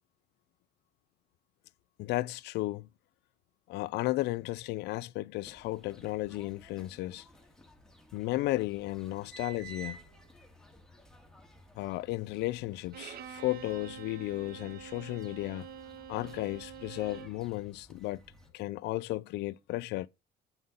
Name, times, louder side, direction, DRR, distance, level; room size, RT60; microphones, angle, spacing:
voice 1, 2.0-2.9 3.7-7.3 8.1-10.0 11.8-15.6 16.1-18.2 18.5-20.1, left 18 dB, 70° left, 0.5 m, -34 dB
sound 1, 5.4-18.5, right 3 dB, 5° left, 1.9 m, -54 dB
Bowed string instrument, 12.9-17.4, right 8 dB, 60° right, 0.9 m, -47 dB
9.2 x 5.6 x 4.0 m
cardioid pair, 110°, 18 cm